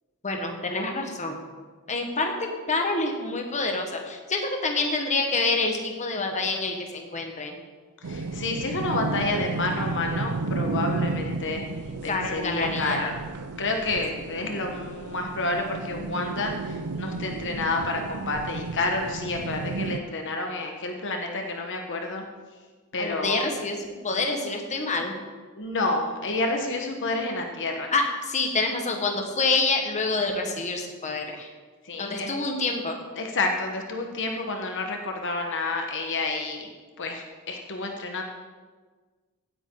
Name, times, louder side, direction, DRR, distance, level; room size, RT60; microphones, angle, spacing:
voice 1, 0.2-1.4 1.9-2.3 2.7-7.6 12.1-13.1 23.0-23.8 24.0-25.2 27.9-31.5 32.0-33.0, left 3 dB, 35° left, 3 dB, 1.4 m, -27 dB
voice 2, 8.0-11.6 12.0-13.2 13.6-22.2 22.9-23.4 25.6-27.9 31.8-32.3 33.2-36.7 37.0-38.2, left 2 dB, 55° left, 3 dB, 1.2 m, -29 dB
sound 1, 8.0-20.0, right 3 dB, 80° right, 0.6 m, -33 dB
16.0 x 9.2 x 3.8 m, 1.4 s
head